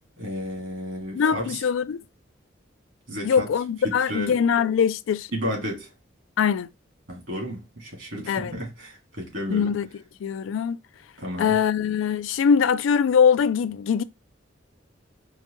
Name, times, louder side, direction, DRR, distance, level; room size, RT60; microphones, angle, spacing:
voice 1, 0.2-1.6 3.1-3.5 3.8-4.4 5.3-5.9 7.1-9.7 11.2-11.6, equal, 65° right, 1.9 m, -32 dB
voice 2, 1.1-2.0 3.2-5.3 6.4-6.7 8.3-8.5 9.5-9.9 10.2-10.8 11.4-14.0, left 7 dB, 90° left, 0.3 m, -22 dB
4.6 x 2.2 x 3.0 m
head